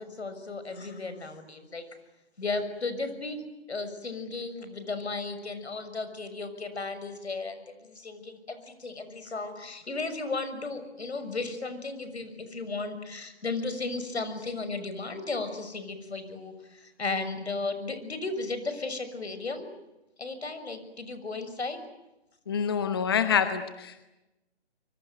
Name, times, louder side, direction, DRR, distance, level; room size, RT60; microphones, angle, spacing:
voice 1, 0.0-1.8 2.4-19.7 20.2-21.8, left 3 dB, 80° left, 10 dB, 6.5 m, -35 dB
voice 2, 22.5-24.0, left 7 dB, 20° left, 10 dB, 1.1 m, -26 dB
25.0 x 24.0 x 9.2 m, 0.97 s
hypercardioid pair, 170°, 33 cm